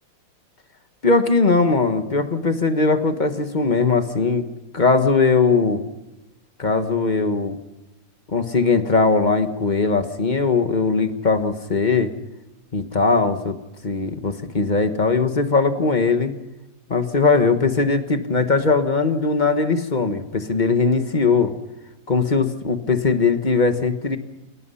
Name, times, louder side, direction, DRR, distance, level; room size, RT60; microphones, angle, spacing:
voice 1, 1.0-4.5 4.7-5.8 6.6-7.6 8.3-12.1 12.7-13.6 13.8-16.3 16.9-21.5 22.1-24.2, left 4 dB, 30° left, 8 dB, 1.2 m, -20 dB
28.5 x 17.0 x 5.6 m, 0.98 s
omnidirectional pair, 2.1 m